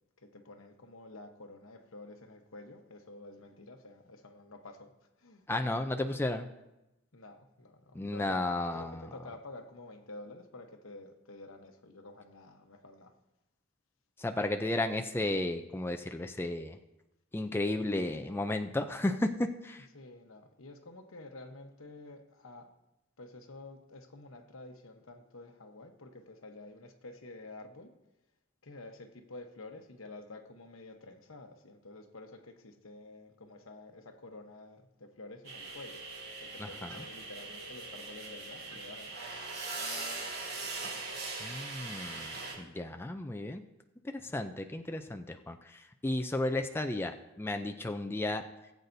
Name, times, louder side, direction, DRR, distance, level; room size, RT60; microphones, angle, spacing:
voice 1, 0.2-4.9 5.2-5.4 7.1-13.2 19.9-22.7 23.2-27.9 28.6-36.0 36.4-39.1, left 2 dB, 80° left, 1.1 m, -50 dB
voice 2, 5.5-6.5 7.9-9.0 14.2-16.8 17.3-19.9 36.6-36.9 41.4-43.6 44.0-48.4, left 2 dB, 10° left, 0.4 m, -33 dB
sound 1, 35.4-42.5, right 3 dB, 75° right, 3.9 m, -41 dB
19.0 x 8.2 x 2.7 m
head